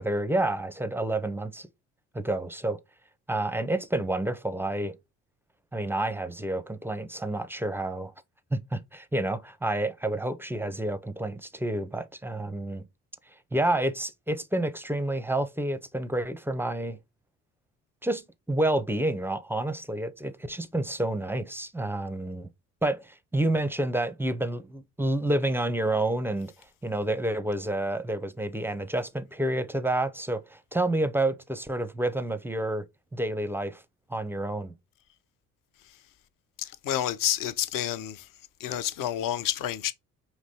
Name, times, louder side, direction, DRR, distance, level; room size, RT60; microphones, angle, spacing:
voice 1, 0.0-1.7 2.1-2.8 3.3-5.0 5.7-8.1 8.5-12.9 13.5-17.0 18.0-22.5 22.8-26.5 26.8-32.8 33.1-33.8 34.1-34.7, right 1 dB, 5° right, 0.5 m, -29 dB
voice 2, 36.6-38.3 38.6-39.9, left 11 dB, 55° left, 0.6 m, -29 dB
5.2 x 3.0 x 2.7 m
hypercardioid pair, 50°, 39 cm